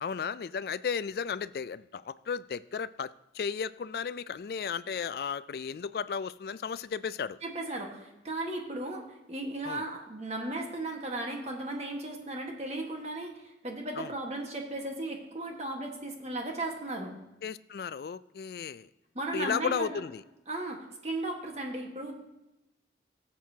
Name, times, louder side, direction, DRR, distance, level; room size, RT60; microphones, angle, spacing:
voice 1, 0.0-7.4 9.6-9.8 14.0-14.1 17.4-18.9 19.3-20.2, left 6 dB, 55° left, 16 dB, 0.3 m, -34 dB
voice 2, 7.4-17.1 19.1-20.0 20.5-22.1, right 2 dB, 35° right, 1 dB, 1.5 m, -36 dB
16.0 x 7.6 x 2.8 m, 0.94 s
head